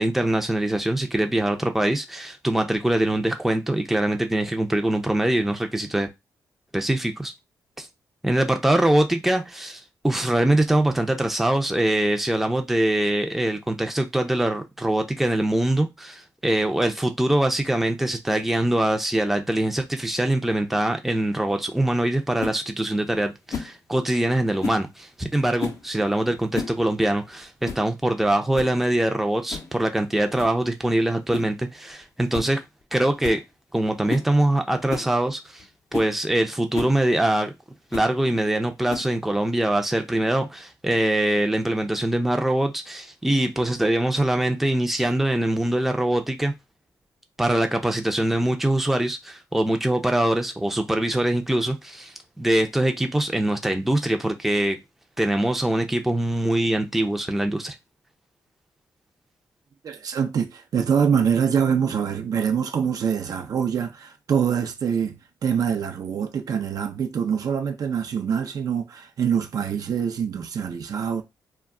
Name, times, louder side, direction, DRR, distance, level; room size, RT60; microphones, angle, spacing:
voice 1, 0.0-6.1 6.7-7.3 7.8-7.9 8.2-32.6 32.9-33.4 33.7-35.6 35.9-37.5 37.9-46.5 47.4-54.8 55.2-57.7, right 1 dB, 5° right, 0.5 m, -23 dB
sound 1, 22.4-22.6 23.5-23.8 24.6-24.9 25.6-25.9 26.4-26.8 27.1-27.2 27.6-27.9 28.2-28.3 28.5-28.8 29.5-29.7 30.4-30.6 31.3-31.6 31.9-32.0 32.3-32.5 32.8-32.9 33.2-33.4 34.1-34.3 34.9-35.1 35.6-35.7 35.9-36.1 36.7-37.0 37.9-38.1 38.9-39.3, left 5 dB, 45° left, 0.6 m, -32 dB
voice 2, 59.8-65.1 65.4-71.2, right 7 dB, 60° right, 0.5 m, -24 dB
2.2 x 2.2 x 3.6 m
cardioid pair, 80°, 7 cm